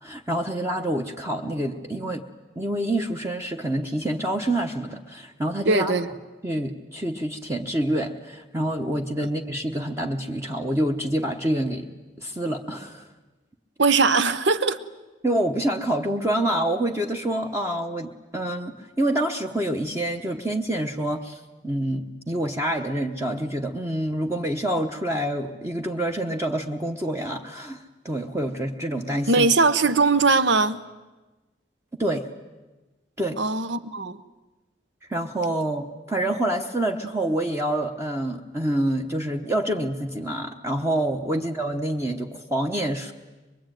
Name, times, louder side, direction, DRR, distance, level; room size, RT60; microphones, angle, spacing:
voice 1, 0.0-2.2 2.6-5.9 6.4-11.9 12.2-13.1 15.2-27.8 28.0-29.5 32.0-32.3 33.2-33.4 35.1-43.1, right 1 dB, 15° right, 2 dB, 1.0 m, -27 dB
voice 2, 5.6-6.1 13.8-14.8 29.3-30.8 33.4-34.2, right 3 dB, 70° right, 13 dB, 1.0 m, -20 dB
23.5 x 22.5 x 9.1 m, 1.2 s
head